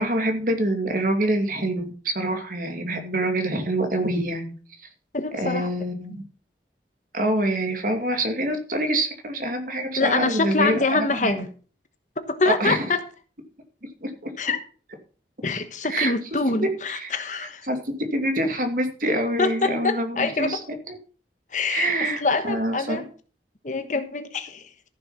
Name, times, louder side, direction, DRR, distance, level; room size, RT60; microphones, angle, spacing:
voice 1, 0.0-4.5 5.4-6.2 7.1-11.4 12.5-12.9 14.0-14.1 15.9-16.1 16.6-16.7 16.9-17.1 17.4-20.6 20.9-21.0 21.7-23.0, right 1 dB, 50° right, 2.4 m, -25 dB
voice 2, 5.1-5.7 10.0-11.5 12.3-13.0 14.4-14.6 15.4-17.7 19.4-20.6 21.5-21.9 22.2-23.0 23.6-24.7, left 3 dB, 45° left, 1.2 m, -25 dB
14.5 x 6.7 x 5.7 m
head